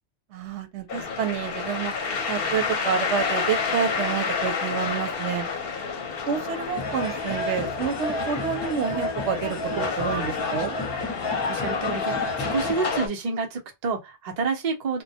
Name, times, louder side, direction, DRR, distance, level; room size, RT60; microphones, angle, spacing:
voice 1, 0.3-1.9 2.3-5.5 6.3-10.8, right 7 dB, 90° right, 0.9 m, -29 dB
sound 1, 0.9-13.1, left 5 dB, 60° left, 0.8 m, -29 dB
sound 2, 6.7-12.7, equal, 30° left, 0.6 m, -32 dB
voice 2, 11.5-15.0, right 4 dB, 45° right, 0.7 m, -29 dB
2.2 x 2.1 x 2.7 m
omnidirectional pair, 1.1 m